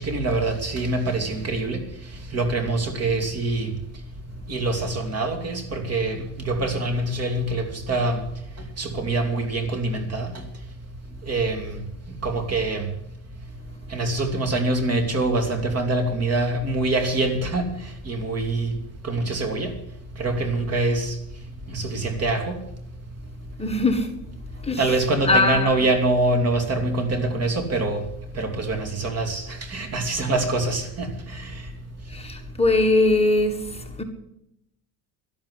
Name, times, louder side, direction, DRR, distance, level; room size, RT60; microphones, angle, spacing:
voice 1, 0.0-1.8 2.3-3.7 4.5-8.2 8.8-10.3 11.3-11.8 12.2-12.8 13.9-17.7 18.0-18.7 19.0-19.7 20.2-21.1 21.7-22.6 24.8-28.0 28.4-29.4 29.7-31.1, right 2 dB, 40° right, 3.0 m, -24 dB
voice 2, 23.6-24.1 24.6-24.9 25.2-25.9 32.1-34.0, left 2 dB, 15° left, 1.6 m, -21 dB
12.5 x 12.0 x 8.1 m
cardioid pair, 115°, 39 cm